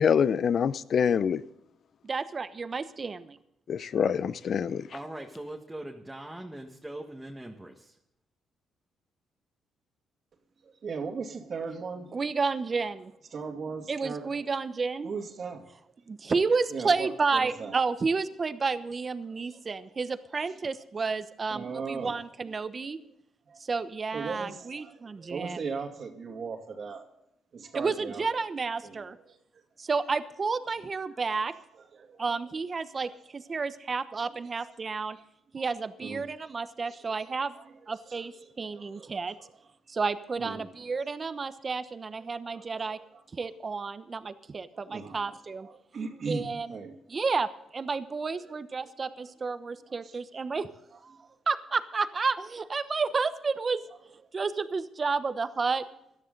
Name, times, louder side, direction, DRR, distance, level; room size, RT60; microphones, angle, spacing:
voice 1, 0.0-1.4 3.7-4.9, left 7 dB, 55° left, 0.7 m, -25 dB
voice 2, 2.0-3.4 12.1-13.1 13.9-15.1 16.1-23.0 23.6-25.6 27.7-29.2 29.8-31.5 32.2-35.2 35.5-37.5 37.9-39.3 39.9-43.0 43.3-45.7 46.3-46.7 47.1-50.7 51.0-51.2 51.5-53.8 54.3-55.8, right 4 dB, 35° right, 1.1 m, -31 dB
voice 3, 4.9-7.9, right 1 dB, 5° right, 1.8 m, -41 dB
voice 4, 10.6-12.1 13.3-14.5 15.0-15.7 16.7-17.8 19.3-19.6 21.5-22.2 23.5-23.6 24.1-27.1 27.5-28.4 28.8-29.4 31.5-32.2 34.4-34.6 35.1-35.2 35.6-35.7 36.0-36.3 36.9-39.5 40.4-40.7 41.4-41.5 42.2-43.5 44.7-45.3 45.6-47.0 48.3-48.5 48.8-48.9 49.2-49.3 49.9-50.2 51.2-51.3, right 5 dB, 50° right, 2.4 m, -39 dB
17.5 x 13.0 x 4.0 m
cardioid pair, 90°, 0 cm